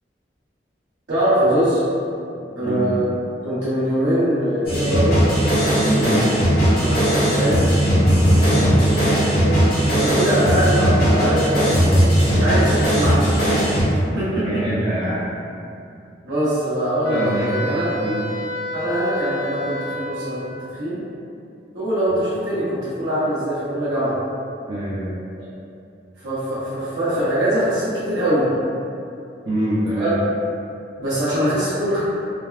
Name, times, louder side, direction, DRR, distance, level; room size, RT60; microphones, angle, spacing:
voice 1, 1.1-1.8 2.5-3.0 3.4-5.2 6.8-7.7 8.6-8.7 9.2-13.2 14.2-14.4 16.2-17.8 18.7-20.4 20.8-21.0 21.7-24.2 26.2-28.5 30.0-30.1 31.0-32.0, right 1 dB, 75° right, -12 dB, 0.8 m, -22 dB
voice 2, 2.6-3.0 5.8-6.3 8.2-8.8 14.4-15.3 17.1-18.3 24.7-25.2 29.4-30.2, right 1 dB, 25° right, -10 dB, 0.4 m, -25 dB
sound 1, 4.7-13.8, equal, 55° left, 0.8 m, -18 dB
Wind instrument woodwind instrument, 17.0-20.5, equal, 85° left, 0.7 m, -29 dB
3.4 x 2.1 x 2.3 m, 2.5 s
head